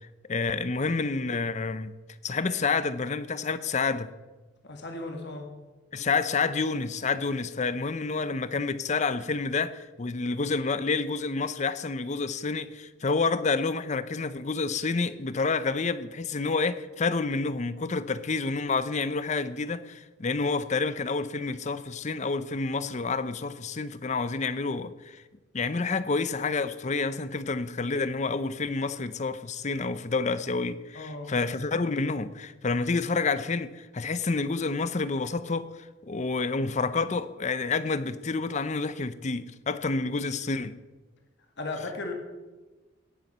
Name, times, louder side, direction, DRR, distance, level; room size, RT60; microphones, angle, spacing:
voice 1, 0.3-1.9 2.2-4.1 5.9-25.2 25.5-35.7 36.0-40.8, left 4 dB, 35° left, 0.6 m, -29 dB
voice 2, 4.6-5.5 30.9-31.3 41.6-42.1, left 2 dB, 60° left, 1.8 m, -36 dB
17.5 x 7.3 x 6.7 m
head